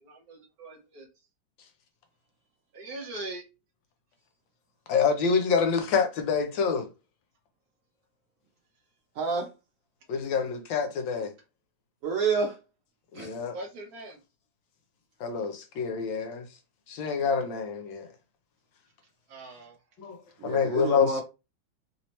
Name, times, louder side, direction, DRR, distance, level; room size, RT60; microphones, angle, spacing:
voice 1, 0.0-1.1 2.7-3.4 13.5-14.2 19.3-19.8, right 2 dB, 55° right, 1.3 m, -41 dB
voice 2, 4.9-6.9 10.1-11.3 13.1-13.6 15.2-16.4 16.9-18.1 20.0-20.2 20.4-21.2, left 6 dB, 75° left, 1.4 m, -27 dB
voice 3, 9.2-9.5 12.0-12.6 13.1-13.4 20.4-21.2, right 5 dB, 85° right, 0.7 m, -28 dB
3.3 x 2.9 x 3.1 m
omnidirectional pair, 2.2 m